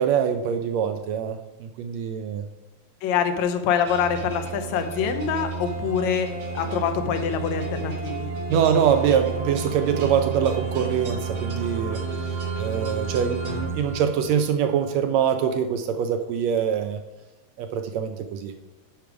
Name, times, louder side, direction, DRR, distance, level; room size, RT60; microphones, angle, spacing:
voice 1, 0.0-2.4 8.5-17.0 17.6-18.5, right 8 dB, 80° right, 7 dB, 1.7 m, -24 dB
voice 2, 3.0-8.3, left 7 dB, 75° left, 6 dB, 1.9 m, -25 dB
sound 1, 3.9-14.5, right 4 dB, 55° right, 1.5 m, -31 dB
10.5 x 4.9 x 4.8 m, 1.1 s
omnidirectional pair, 3.4 m